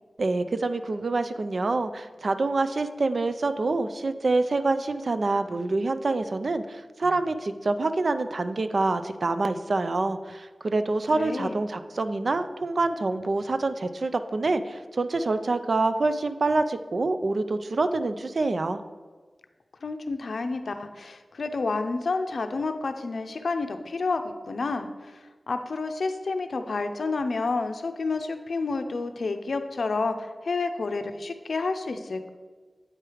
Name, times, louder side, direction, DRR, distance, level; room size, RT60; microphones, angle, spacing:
voice 1, 0.2-18.8, right 3 dB, 60° right, 10 dB, 0.4 m, -26 dB
voice 2, 11.1-11.6 19.8-25.2 25.5-32.3, left 3 dB, 75° left, 7 dB, 0.5 m, -30 dB
8.7 x 4.6 x 4.9 m, 1.4 s
wide cardioid pair, 85°, 0 cm